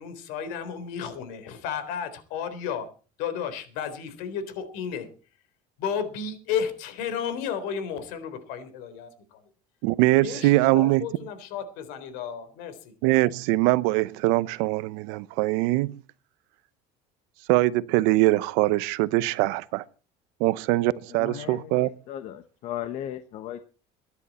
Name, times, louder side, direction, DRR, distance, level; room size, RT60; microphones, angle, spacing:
voice 1, 0.0-2.9 3.2-5.1 5.8-9.4 10.2-12.9, left 7 dB, 70° left, 3.9 m, -33 dB
voice 2, 9.8-11.0 13.0-15.9 17.5-19.8 20.4-21.9, right 19 dB, 90° right, 0.8 m, -22 dB
voice 3, 21.1-23.7, left 11 dB, 50° left, 1.1 m, -36 dB
22.5 x 11.0 x 4.3 m
cardioid pair, 165°, 15 cm